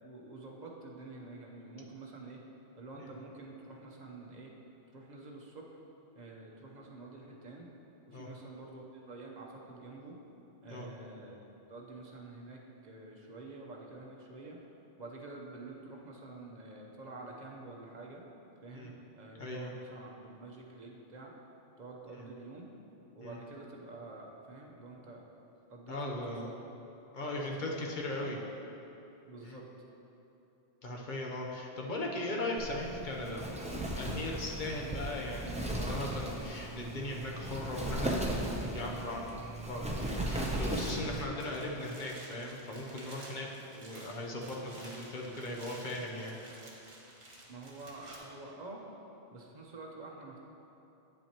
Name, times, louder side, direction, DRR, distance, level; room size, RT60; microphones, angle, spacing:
voice 1, 0.0-2.4 2.8-4.5 4.9-5.8 6.1-7.7 8.1-10.2 10.6-11.4 11.7-14.7 15.0-18.2 18.6-21.3 21.8-22.7 23.1-25.3 25.7-26.5 27.3-27.9 28.2-28.4 29.3-29.7 43.5-43.6 47.5-48.8 49.3-50.4, right 2 dB, 45° right, -1 dB, 0.9 m, -48 dB
voice 2, 19.4-19.7 22.2-22.3 23.2-23.4 25.9-26.5 27.1-28.4 29.4-29.6 30.8-33.4 34.0-38.3 38.7-43.5 43.7-46.4, left 1 dB, 50° left, -1 dB, 0.9 m, -38 dB
Wind, 32.6-41.2, right 1 dB, 10° right, 0.5 m, -36 dB
sound 1, 39.9-48.2, right 2 dB, 70° right, 1.4 m, -52 dB
8.6 x 7.6 x 3.0 m, 3.0 s
omnidirectional pair, 1.1 m